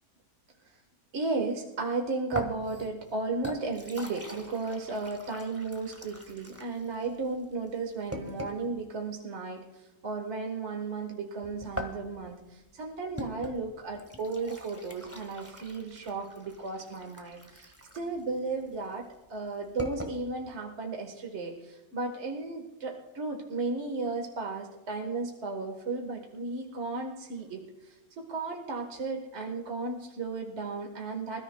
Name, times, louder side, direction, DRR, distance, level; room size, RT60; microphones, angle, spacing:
voice 1, 1.1-9.6 10.0-19.0 19.3-31.4, right 3 dB, 55° right, 2 dB, 1.6 m, -34 dB
sound 1, 2.3-8.7 11.4-20.2, equal, 10° right, 1.4 m, -42 dB
26.0 x 13.5 x 2.2 m, 1.1 s
omnidirectional pair, 1.5 m